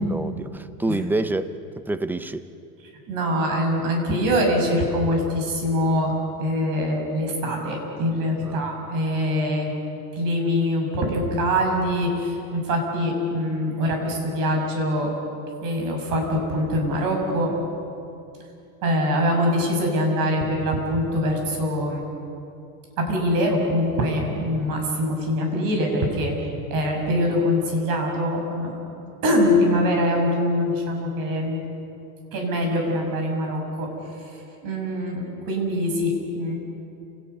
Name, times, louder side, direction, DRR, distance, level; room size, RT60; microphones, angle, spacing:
voice 1, 0.0-1.5 1.9-2.4 8.4-8.6, right 2 dB, 5° right, 12 dB, 0.6 m, -27 dB
voice 2, 3.1-6.1 6.4-9.7 10.1-15.1 15.6-17.5 18.8-22.0 23.0-26.3 26.7-28.7 29.2-31.6 32.3-33.9 34.6-36.5, equal, 50° right, 2 dB, 6.5 m, -23 dB
30.0 x 18.0 x 6.8 m, 2.7 s
supercardioid pair, 140°, 44 cm